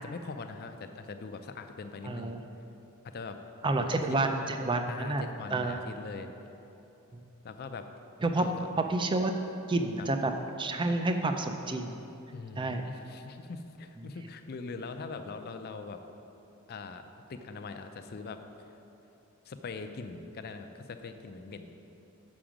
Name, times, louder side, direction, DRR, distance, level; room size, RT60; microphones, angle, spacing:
voice 1, 0.0-2.4 3.0-3.4 3.7-4.0 4.9-6.3 7.4-7.9 8.4-8.5 10.0-10.1 12.3-16.0 16.7-17.0 17.3-18.7 19.5-21.7, left 4 dB, 45° left, 7 dB, 0.4 m, -42 dB
voice 2, 2.0-2.4 3.6-5.2 5.5-5.8 8.2-8.5 8.9-9.4 9.7-10.3 10.6-12.0 12.6-12.8, right 2 dB, 20° right, 6 dB, 0.4 m, -29 dB
7.3 x 6.1 x 5.0 m, 3.0 s
head